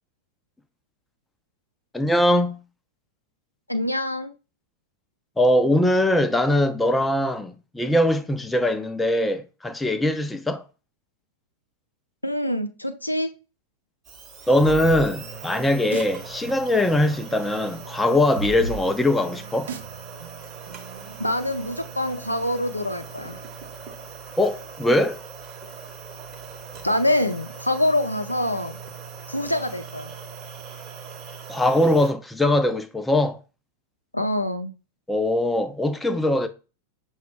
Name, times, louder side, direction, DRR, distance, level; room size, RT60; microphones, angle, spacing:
voice 1, 1.9-2.6 5.4-10.6 14.5-19.7 24.4-25.2 31.5-33.4 35.1-36.5, left 1 dB, 5° left, 0.5 m, -21 dB
voice 2, 3.7-4.3 12.2-13.3 21.2-23.4 26.8-28.8 29.3-30.1 34.1-34.7, left 1 dB, 85° left, 0.5 m, -25 dB
sound 1, 14.0-32.1, right 6 dB, 30° right, 1.0 m, -40 dB
sound 2, 14.6-22.0, right 4 dB, 60° right, 0.6 m, -37 dB
5.8 x 2.3 x 3.5 m
figure-of-eight pair, 90°, 0 cm